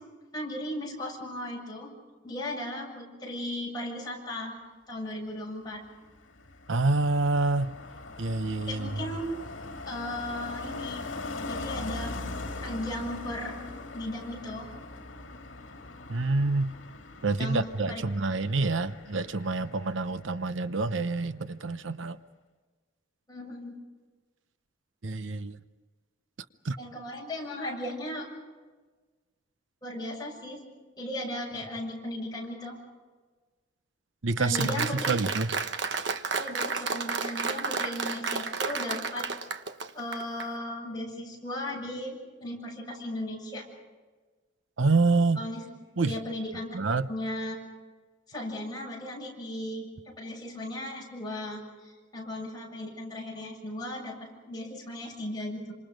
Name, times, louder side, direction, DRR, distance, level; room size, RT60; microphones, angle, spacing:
voice 1, 0.3-1.9 2.2-4.6 4.9-5.8 8.7-9.3 9.8-11.0 11.5-12.2 12.6-13.6 13.9-14.7 17.4-17.6 17.9-18.0 23.3-23.8 26.8-28.3 29.8-30.6 31.0-32.8 34.4-35.2 36.4-39.3 39.9-42.1 42.4-43.6 45.4-45.6 46.1-46.8 47.1-47.6 48.3-54.2 54.4-55.7, left 1 dB, 20° left, -2 dB, 7.3 m, -36 dB
Car passing by, 5.7-20.5 20.7-21.1, left 2 dB, 85° left, 2.0 m, -41 dB
voice 2, 6.7-7.8 8.2-8.9 16.1-16.7 17.2-22.2 25.0-25.6 26.6-26.8 34.2-35.5 44.8-45.4 46.0-46.1 46.7-47.1, right 3 dB, 85° right, 12 dB, 0.8 m, -27 dB
Applause, 34.5-40.5, right 4 dB, 65° right, 1.2 m, -32 dB
28.0 x 26.5 x 5.2 m, 1.3 s
head